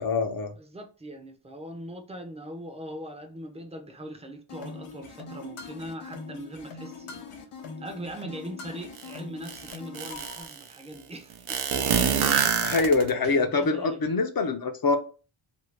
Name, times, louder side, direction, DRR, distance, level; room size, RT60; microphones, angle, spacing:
voice 1, 0.0-0.5 12.6-15.0, left 4 dB, 45° left, 0.5 m, -24 dB
voice 2, 0.6-7.2 7.8-11.6 13.4-14.0, right 1 dB, 15° right, 0.5 m, -40 dB
sound 1, 4.5-10.5, left 5 dB, 90° left, 0.7 m, -42 dB
sound 2, 9.0-9.1 9.5-10.6 11.5-13.3, right 7 dB, 85° right, 0.6 m, -25 dB
2.7 x 2.6 x 3.2 m
wide cardioid pair, 135°, 49 cm